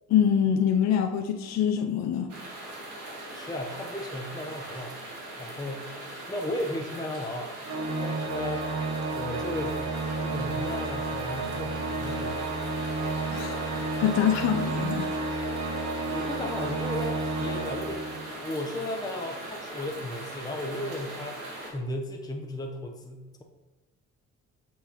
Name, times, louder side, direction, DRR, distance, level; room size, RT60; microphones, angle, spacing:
voice 1, 0.1-2.3 13.3-13.6 14.0-15.4, left 8 dB, 60° left, 0.6 m, -25 dB
sound 1, 2.3-21.7, right 1 dB, 85° right, 1.8 m, -40 dB
voice 2, 3.3-5.0 5.4-7.5 8.0-8.7 9.1-9.8 10.2-12.4 16.1-23.4, left 1 dB, 15° left, 0.7 m, -35 dB
Organ, 7.6-18.5, right 3 dB, 60° right, 1.1 m, -31 dB
7.8 x 4.6 x 2.9 m
cardioid pair, 90°, 30 cm